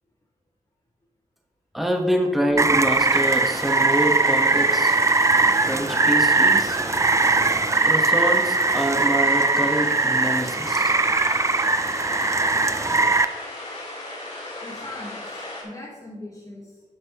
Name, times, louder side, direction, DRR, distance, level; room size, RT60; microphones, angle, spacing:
voice 1, 1.7-5.0 5.5-6.8 7.8-11.0, equal, ahead, 1 dB, 1.1 m, -26 dB
Rain, 2.6-13.3, right 3 dB, 20° right, 0.4 m, -20 dB
sound 1, 3.0-15.6, left 2 dB, 50° left, 3.0 m, -36 dB
voice 2, 14.6-16.8, left 1 dB, 30° left, -9 dB, 3.1 m, -40 dB
12.0 x 7.4 x 2.9 m, 1.3 s
wide cardioid pair, 95°, 14 cm